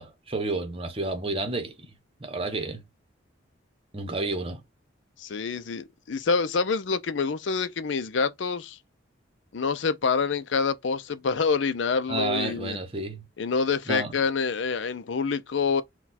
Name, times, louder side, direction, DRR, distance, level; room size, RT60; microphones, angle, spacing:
voice 1, 0.0-1.9 2.2-2.8 3.9-4.6 12.1-13.2 13.9-14.1, right 2 dB, 30° right, 0.9 m, -31 dB
voice 2, 5.2-8.8 9.5-12.8 13.4-15.8, left 5 dB, 75° left, 0.5 m, -27 dB
4.2 x 2.3 x 4.1 m
head